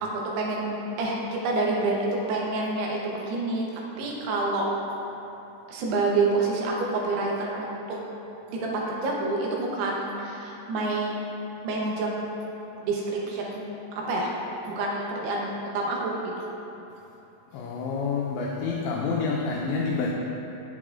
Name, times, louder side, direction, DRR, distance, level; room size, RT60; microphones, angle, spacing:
voice 1, 0.0-3.6 4.0-4.7 5.7-8.0 8.5-11.2 11.6-12.1 12.8-13.6 14.1-14.3 14.7-16.3, right 3 dB, 85° right, -2 dB, 3.0 m, -28 dB
voice 2, 17.5-20.1, left 4 dB, 80° left, -2 dB, 2.5 m, -28 dB
7.8 x 7.7 x 2.5 m, 3.0 s
omnidirectional pair, 4.6 m